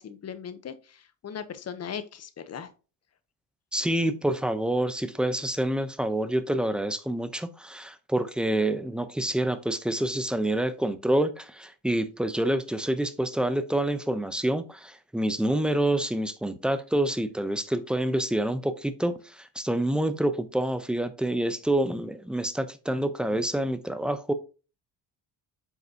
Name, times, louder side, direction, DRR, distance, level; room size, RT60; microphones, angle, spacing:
voice 1, 0.0-2.7, left 7 dB, 40° left, 0.9 m, -38 dB
voice 2, 3.7-24.3, right 1 dB, ahead, 0.7 m, -27 dB
7.9 x 4.8 x 2.8 m
cardioid pair, 100°, 41 cm